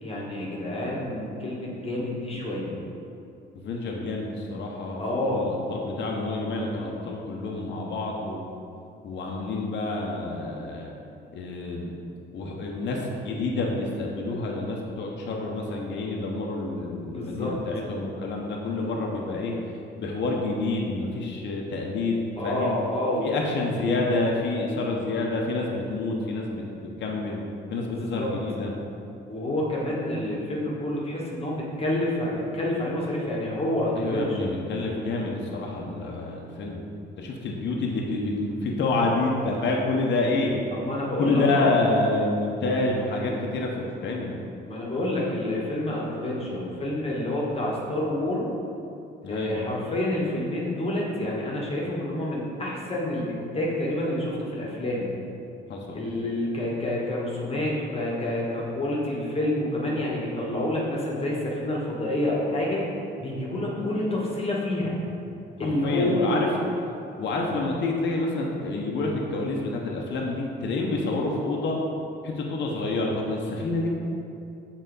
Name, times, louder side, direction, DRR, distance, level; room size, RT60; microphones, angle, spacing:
voice 1, 0.0-2.7 5.0-5.5 17.0-17.5 22.4-23.3 27.7-27.9 28.2-28.3 29.3-34.5 40.7-41.8 44.7-48.5 49.3-55.1 55.9-62.8 63.2-64.9 65.6-66.4, left 1 dB, 30° left, -4 dB, 1.4 m, -28 dB
voice 2, 3.5-8.5 9.0-10.9 11.3-12.0 12.3-19.6 20.0-22.7 23.2-27.4 27.7-28.7 33.9-36.9 37.2-40.5 41.2-44.3 49.2-49.7 55.7-56.0 65.6-66.5 67.2-71.8 72.2-73.9, left 2 dB, 65° left, -1 dB, 0.9 m, -28 dB
6.6 x 4.0 x 4.0 m, 2.7 s
cardioid pair, 90°, 20 cm